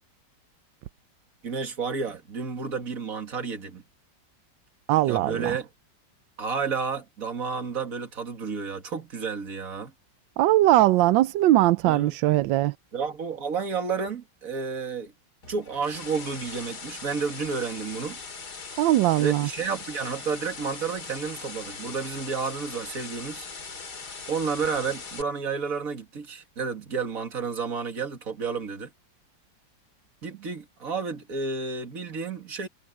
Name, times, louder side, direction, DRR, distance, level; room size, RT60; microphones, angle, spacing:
voice 1, 1.4-3.8 5.1-5.7 6.4-9.9 11.9-12.2 12.9-15.1 15.4-18.2 19.2-23.5 24.3-28.9 30.2-32.7, right 5 dB, 50° right, 2.6 m, -31 dB
voice 2, 4.9-5.6 10.4-12.7 18.8-19.5, right 15 dB, 90° right, 1.3 m, -20 dB
sound 1, 15.4-25.2, left 4 dB, 60° left, 3.0 m, -40 dB
omnidirectional pair, 2.0 m